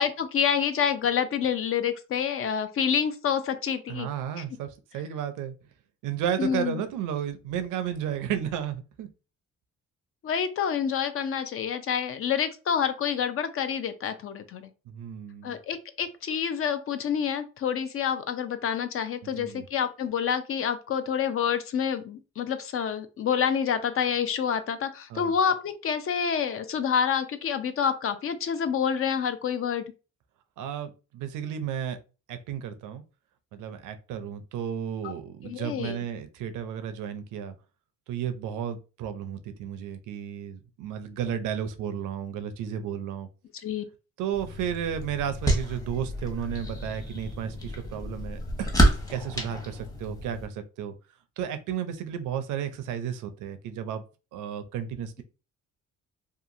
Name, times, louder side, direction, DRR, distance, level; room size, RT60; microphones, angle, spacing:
voice 1, 0.0-4.1 4.4-4.5 6.4-6.8 10.2-14.7 15.4-29.9 35.0-35.1 35.4-36.0 43.6-43.8, left 7 dB, 50° left, 10 dB, 0.5 m, -28 dB
voice 2, 3.9-5.5 6.0-9.1 14.9-15.5 19.4-19.6 25.1-25.3 30.6-32.0 32.3-33.0 33.5-37.5 38.1-43.3 44.2-48.7 49.1-50.9 51.4-54.0 54.3-55.2, right 9 dB, 85° right, 9 dB, 0.5 m, -33 dB
sound 1, 44.3-50.5, right 1 dB, 10° left, 0.9 m, -29 dB
2.8 x 2.4 x 2.5 m, 0.32 s
cardioid pair, 90°, 30 cm